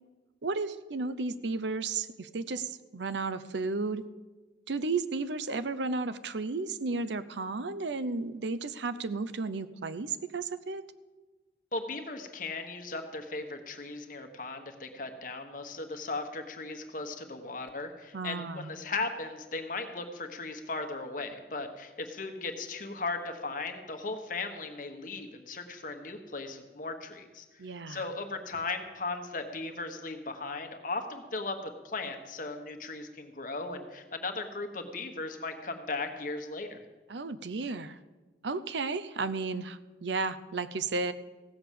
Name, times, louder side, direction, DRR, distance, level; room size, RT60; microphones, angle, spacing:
voice 1, 0.4-4.0 4.7-10.8 18.1-18.7 27.6-28.1 37.1-38.0 38.4-41.1, right 3 dB, 80° right, 13 dB, 0.6 m, -33 dB
voice 2, 11.7-27.4 27.9-36.8, left 3 dB, 50° left, 6 dB, 1.3 m, -37 dB
16.0 x 6.8 x 7.5 m, 1.2 s
head